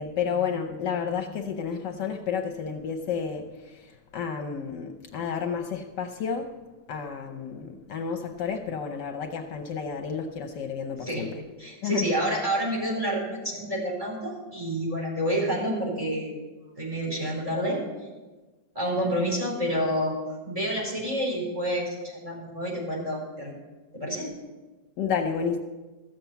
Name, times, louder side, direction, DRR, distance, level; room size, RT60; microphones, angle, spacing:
voice 1, 0.0-6.5 6.9-11.4 11.8-12.1 25.0-25.6, left 6 dB, 70° left, 5 dB, 1.4 m, -31 dB
voice 2, 11.6-16.3 16.8-17.8 18.7-20.2 20.4-23.5 24.0-24.3, equal, 15° right, -4 dB, 4.8 m, -28 dB
14.5 x 7.5 x 7.0 m, 1.2 s
omnidirectional pair, 2.1 m